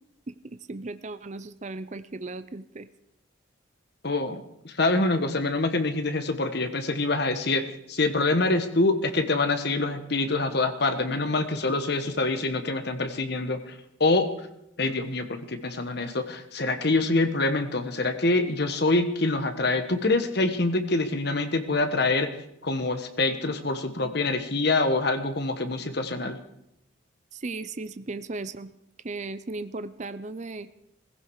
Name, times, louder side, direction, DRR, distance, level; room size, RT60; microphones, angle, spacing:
voice 1, 0.3-2.9 27.3-28.7 29.0-30.7, right 3 dB, 35° right, 13 dB, 0.5 m, -36 dB
voice 2, 4.0-14.3 14.8-22.3 22.6-26.4, left 2 dB, 55° left, 8 dB, 1.3 m, -25 dB
17.5 x 15.5 x 4.8 m, 0.80 s
head